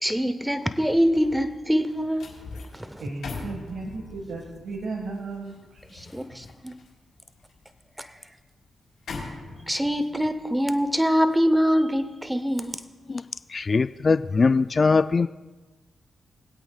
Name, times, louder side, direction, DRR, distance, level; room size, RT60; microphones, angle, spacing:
voice 1, 0.0-2.2 2.7-3.0 5.9-6.7 8.0-8.1 9.7-12.8, equal, 5° right, 10 dB, 0.9 m, -24 dB
sound 1, 0.7-14.0 14.4-14.6, left 4 dB, 80° left, 3.5 m, -44 dB
voice 2, 3.0-5.8, right 3 dB, 75° right, 1 dB, 1.6 m, -35 dB
voice 3, 13.5-15.3, left 4 dB, 45° left, 13 dB, 0.3 m, -21 dB
22.5 x 8.4 x 2.4 m, 1.2 s
cardioid pair, 55°, 0 cm